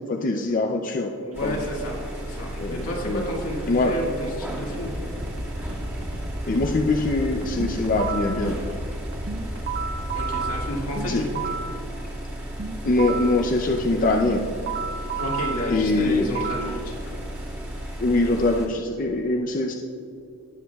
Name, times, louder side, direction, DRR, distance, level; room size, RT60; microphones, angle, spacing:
voice 1, 0.1-1.1 1.4-1.6 2.5-3.3 3.7-4.0 6.5-8.6 11.1-11.2 12.8-14.4 15.7-16.3 18.0-19.7, left 2 dB, 40° left, 2 dB, 0.5 m, -23 dB
voice 2, 1.2-5.0 10.1-11.2 15.2-17.1, equal, 70° left, -2 dB, 2.0 m, -31 dB
sound 1, 1.3-18.7, equal, 10° right, 1.9 m, -34 dB
sound 2, 1.3-11.1, equal, 90° right, 1.4 m, -36 dB
sound 3, 7.6-8.4 9.3-11.8 12.6-13.4 14.3-16.8, right 5 dB, 45° right, 0.5 m, -32 dB
18.0 x 7.4 x 2.3 m, 2.7 s
head